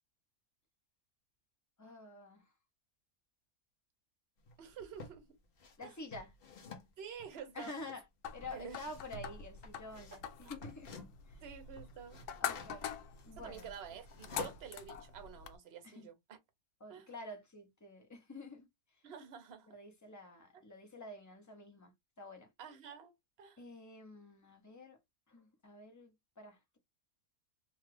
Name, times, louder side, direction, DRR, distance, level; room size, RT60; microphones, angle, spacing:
voice 1, 1.8-2.5 5.8-6.3 7.5-8.0 8.3-11.0 11.3-11.4 12.4-12.9 13.2-13.7 15.8-16.1 16.8-18.7 19.7-22.5 23.6-25.0 25.3-26.8, left 2 dB, 20° left, 0.5 m, -49 dB
sound 1, 4.5-5.2 5.6-11.4 11.6-14.8, left 4 dB, 50° left, 0.7 m, -51 dB
voice 2, 4.6-5.3 5.8-6.0 7.0-7.7 8.5-8.8 11.4-12.6 13.4-16.4 16.9-17.1 19.0-19.7 22.6-23.6, right 7 dB, 50° right, 0.9 m, -49 dB
sound 2, 8.2-15.6, left 9 dB, 80° left, 1.1 m, -45 dB
2.9 x 2.3 x 3.2 m
omnidirectional pair, 1.6 m